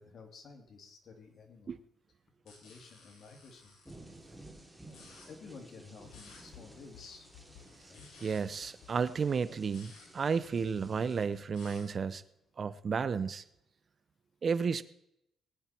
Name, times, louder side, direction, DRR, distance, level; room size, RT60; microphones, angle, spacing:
voice 1, 0.0-1.7 2.4-3.7 4.8-7.3 7.9-8.1, left 4 dB, 55° left, 3 dB, 2.9 m, -52 dB
sound 1, 2.5-3.9 4.8-5.3 6.1-6.4 7.6-8.4 9.6-10.1 11.1-11.8, left 3 dB, 70° left, 7.4 m, -56 dB
sound 2, 3.8-11.2, right 1 dB, ahead, 3.7 m, -55 dB
sound 3, 6.0-12.0, left 9 dB, 90° left, 1.2 m, -60 dB
voice 2, 8.2-12.2 12.6-13.4 14.4-14.8, right 5 dB, 45° right, 16 dB, 0.7 m, -32 dB
20.0 x 9.8 x 4.5 m, 0.79 s
cardioid pair, 90°, 0 cm